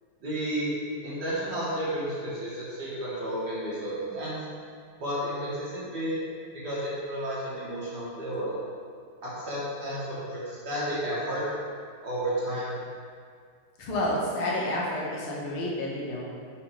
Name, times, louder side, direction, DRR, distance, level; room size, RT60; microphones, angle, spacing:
voice 1, 0.2-0.7 1.0-4.4 5.0-6.2 6.6-8.5 9.2-11.4 12.0-12.8, right 1 dB, 50° right, -9 dB, 2.2 m, -32 dB
voice 2, 13.8-16.2, left 1 dB, 75° left, -4 dB, 1.9 m, -29 dB
5.6 x 5.5 x 3.4 m, 2.1 s
omnidirectional pair, 2.4 m